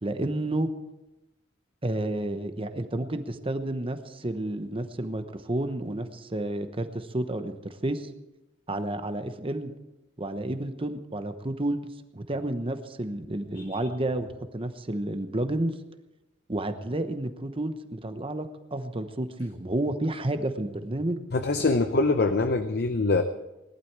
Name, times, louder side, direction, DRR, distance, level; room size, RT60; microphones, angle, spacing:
voice 1, 0.0-0.7 1.8-8.1 8.7-9.7 10.2-15.7 16.5-21.2, right 1 dB, 30° right, 9 dB, 1.0 m, -31 dB
voice 2, 21.3-23.2, left 3 dB, 55° left, 8 dB, 0.7 m, -24 dB
18.5 x 12.0 x 4.7 m, 1.0 s
head